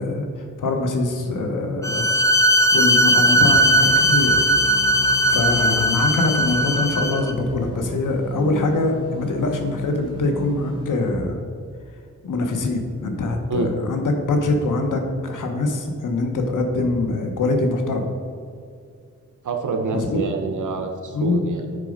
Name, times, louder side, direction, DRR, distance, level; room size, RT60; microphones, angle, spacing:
voice 1, 0.0-2.1 2.4-4.4 5.3-11.4 12.2-18.1 19.9-20.2 21.1-21.5, left 2 dB, 85° left, 4 dB, 1.0 m, -23 dB
Bowed string instrument, 1.8-7.3, equal, 10° left, 0.6 m, -18 dB
sound 1, 3.4-11.1, left 4 dB, 15° right, 1.6 m, -34 dB
voice 2, 19.4-21.8, right 4 dB, 75° right, 4 dB, 0.7 m, -27 dB
6.5 x 4.9 x 5.1 m, 2.3 s
cardioid pair, 70°, 30 cm